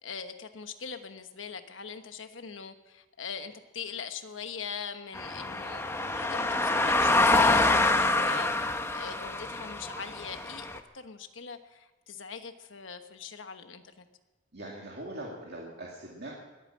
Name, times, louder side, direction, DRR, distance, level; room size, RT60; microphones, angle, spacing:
voice 1, 0.0-8.5 8.9-10.7 10.9-14.0, left 6 dB, 90° left, 8 dB, 1.2 m, -42 dB
sound 1, 5.1-10.8, left 2 dB, 15° left, 0.8 m, -26 dB
voice 2, 14.5-16.3, right 1 dB, 60° right, -3 dB, 2.4 m, -41 dB
21.5 x 9.0 x 7.5 m, 1.2 s
head